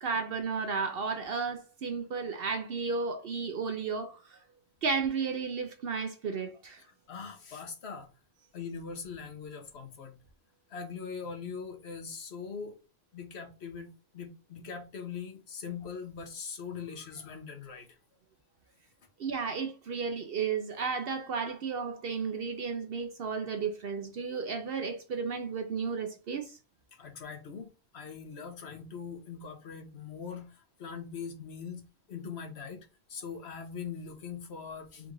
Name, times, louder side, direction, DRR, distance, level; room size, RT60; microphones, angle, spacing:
voice 1, 0.0-4.4 4.8-6.8 19.2-26.6, right 5 dB, 60° right, 0.7 m, -33 dB
voice 2, 6.8-8.1 8.5-10.2 10.7-12.8 13.1-18.0 26.9-31.8 32.1-35.1, left 6 dB, 60° left, 1.1 m, -42 dB
3.7 x 2.5 x 4.5 m
omnidirectional pair, 1.3 m